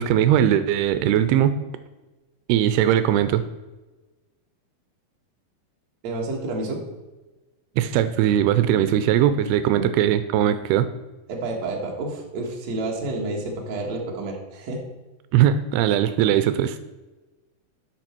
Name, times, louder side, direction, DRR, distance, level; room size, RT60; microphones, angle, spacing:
voice 1, 0.0-1.6 2.5-3.4 7.8-10.9 15.3-16.8, right 10 dB, 85° right, 11 dB, 2.6 m, -20 dB
voice 2, 6.0-6.8 9.7-9.9 11.3-14.8, right 2 dB, 50° right, 0 dB, 2.5 m, -29 dB
12.0 x 6.3 x 4.5 m, 1.2 s
omnidirectional pair, 4.6 m